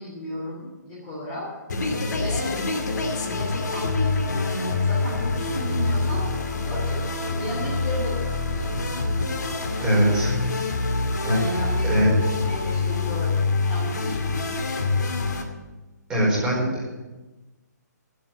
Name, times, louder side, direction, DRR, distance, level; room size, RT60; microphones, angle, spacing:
voice 1, 0.0-1.5 2.1-2.6 3.2-8.8 9.3-9.6 11.3-15.0, left 1 dB, 15° left, -7 dB, 3.1 m, -35 dB
sound 1, 1.7-15.4, left 3 dB, 70° left, 2.5 m, -25 dB
voice 2, 9.8-10.3 11.2-11.4 11.8-12.1 16.1-17.0, equal, 10° right, -6 dB, 4.6 m, -22 dB
13.0 x 9.1 x 7.6 m, 1.2 s
hypercardioid pair, 170°, 10 cm